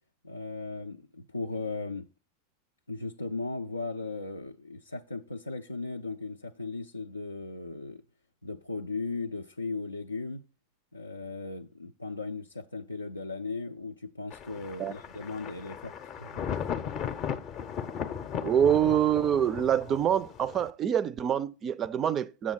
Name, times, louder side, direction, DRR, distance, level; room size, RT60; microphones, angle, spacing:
voice 1, 0.2-2.1 2.9-8.0 8.4-10.4 10.9-16.4 17.0-17.1, left 3 dB, 80° left, 0.4 m, -37 dB
Thunder, 14.3-20.7, left 8 dB, 35° left, 0.6 m, -37 dB
voice 2, 18.4-22.5, right 9 dB, 30° right, 0.4 m, -26 dB
7.6 x 7.2 x 4.1 m
figure-of-eight pair, 90°, 0 cm